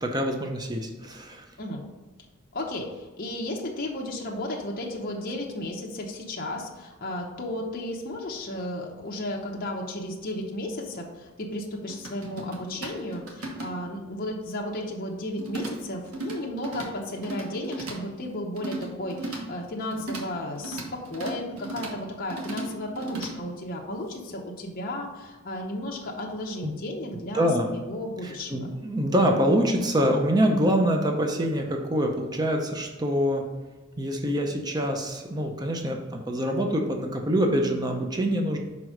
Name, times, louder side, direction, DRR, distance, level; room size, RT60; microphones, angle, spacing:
voice 1, 0.0-1.4 26.6-26.7 27.3-27.7 28.2-33.4 34.0-38.6, equal, 20° right, 2 dB, 0.6 m, -25 dB
voice 2, 2.5-28.7, left 1 dB, 40° left, -1 dB, 0.8 m, -34 dB
sound 1, 11.9-14.0 15.4-15.7 16.1-16.9 17.2-18.0 18.6-19.4 19.9-20.2 20.6-21.9 22.3-23.3, right 2 dB, 85° right, 1.3 m, -36 dB
5.4 x 4.8 x 5.0 m, 1.2 s
head